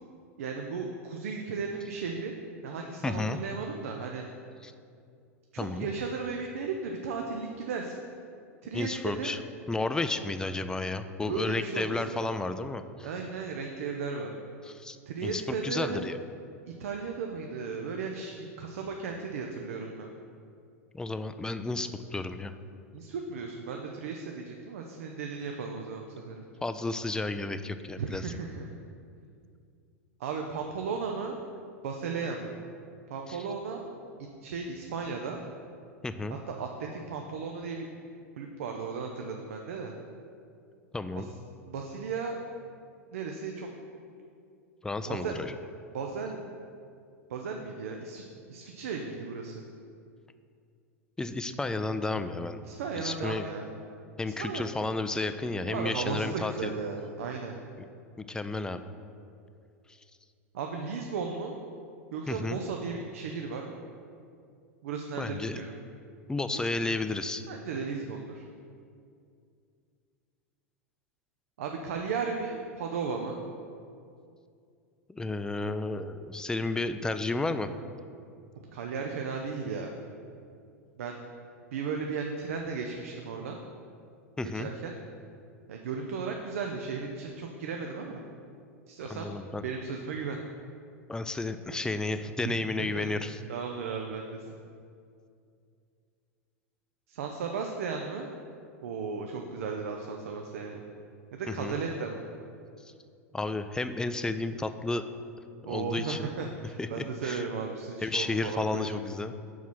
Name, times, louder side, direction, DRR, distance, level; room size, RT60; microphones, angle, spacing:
voice 1, 0.4-2.3 2.6-4.3 5.5-8.0 8.6-9.3 11.3-12.3 13.0-14.3 15.1-16.1 16.7-20.1 22.9-26.4 28.0-28.7 30.2-31.4 31.8-32.5 33.1-33.8 34.2-35.4 36.5-37.9 38.4-39.9 41.1-41.2 41.7-42.4 43.1-43.7 45.1-45.4 45.9-46.4 47.3-48.2 48.5-49.6 52.6-53.7 54.2-54.6 55.6-57.6 60.5-61.5 62.1-63.7 64.8-65.7 66.5-66.7 67.5-68.5 71.6-73.4 78.7-80.0 81.0-81.2 81.7-83.6 84.4-84.9 85.7-88.2 88.9-89.4 89.6-90.4 92.8-94.5 97.1-98.3 98.8-100.8 101.3-102.3 105.6-109.0, right 5 dB, 70° right, 2 dB, 0.6 m, -35 dB
voice 2, 3.0-3.4 4.6-4.7 5.6-5.9 8.7-9.4 9.7-13.1 14.6-16.2 20.9-22.5 26.6-28.3 33.3-33.5 36.0-36.4 40.9-41.3 44.8-45.5 51.2-52.6 53.0-53.5 54.2-56.7 58.2-58.8 59.9-60.0 62.3-62.6 65.2-65.6 66.3-67.4 75.1-77.7 84.4-84.7 89.1-89.6 91.1-93.4 101.6-101.8 102.8-102.9 103.3-105.0 105.7-106.3 106.8-107.4 108.0-109.3, left 2 dB, 10° left, 10 dB, 0.4 m, -32 dB
5.6 x 4.7 x 6.1 m, 2.4 s
hypercardioid pair, 90°, 8 cm